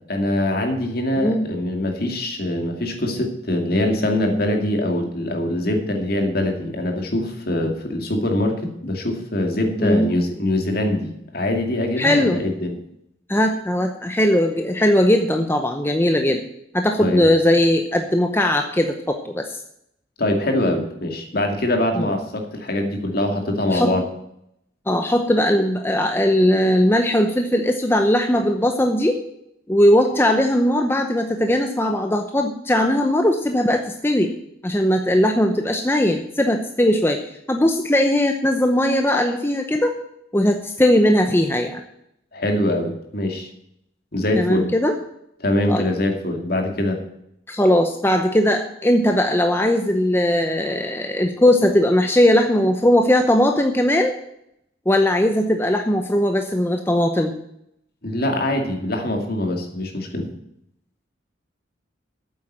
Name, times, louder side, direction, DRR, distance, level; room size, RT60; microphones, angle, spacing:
voice 1, 0.1-12.7 17.0-17.3 20.2-24.0 42.3-43.5 44.1-44.7 45.4-47.0 58.0-60.3, left 1 dB, 50° left, 3 dB, 2.4 m, -23 dB
voice 2, 1.2-1.5 9.8-10.1 12.0-12.4 13.3-16.4 16.7-19.6 21.9-22.1 23.7-23.9 24.9-29.2 29.7-34.3 34.6-37.2 37.5-39.9 40.3-41.8 44.3-45.0 45.7-45.8 47.5-54.1 54.9-57.3, left 1 dB, 10° left, 4 dB, 0.7 m, -19 dB
9.0 x 8.0 x 8.7 m, 0.77 s
head